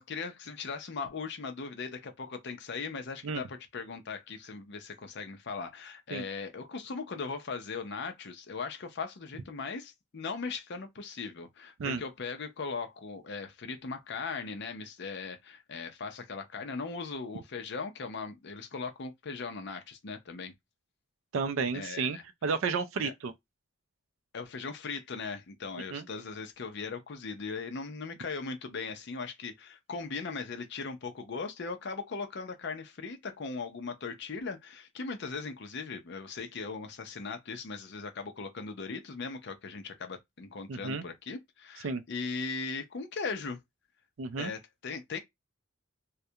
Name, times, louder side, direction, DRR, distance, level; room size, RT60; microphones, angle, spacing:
voice 1, 0.0-20.5 21.7-22.2 23.0-23.1 24.3-43.6 44.4-45.2, left 4 dB, 50° left, 0.5 m, -39 dB
voice 2, 21.3-23.3 25.9-26.0 40.7-41.0 41.8-42.0 44.2-44.5, right 5 dB, 65° right, 0.4 m, -32 dB
2.3 x 2.1 x 2.7 m
head